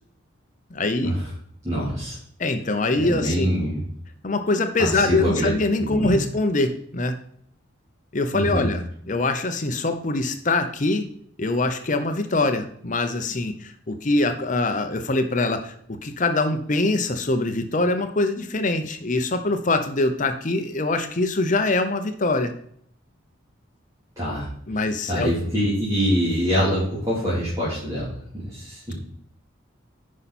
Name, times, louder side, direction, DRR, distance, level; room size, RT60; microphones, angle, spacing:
voice 1, 0.7-1.1 2.4-3.5 4.2-7.2 8.1-8.8 9.1-11.1 11.4-22.5 24.7-25.3, left 2 dB, 40° left, 8 dB, 0.7 m, -23 dB
voice 2, 1.6-2.2 3.0-3.8 4.8-5.5 5.8-6.2 8.3-8.7 24.2-24.5 25.1-29.0, equal, 15° right, -10 dB, 3.3 m, -25 dB
9.6 x 5.6 x 4.3 m, 0.65 s
head